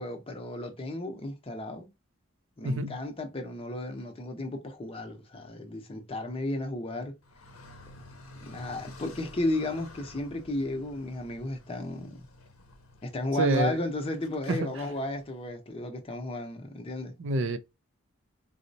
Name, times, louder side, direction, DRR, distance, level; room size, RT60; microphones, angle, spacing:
voice 1, 0.0-1.9 2.6-7.2 8.4-12.3 13.0-17.1, left 2 dB, 25° left, 0.6 m, -34 dB
voice 2, 2.6-3.0 13.4-13.8 14.5-14.7 17.2-17.6, right 2 dB, 60° right, 0.5 m, -27 dB
Car, 7.2-15.5, left 2 dB, 85° left, 0.7 m, -51 dB
4.1 x 2.0 x 2.6 m
head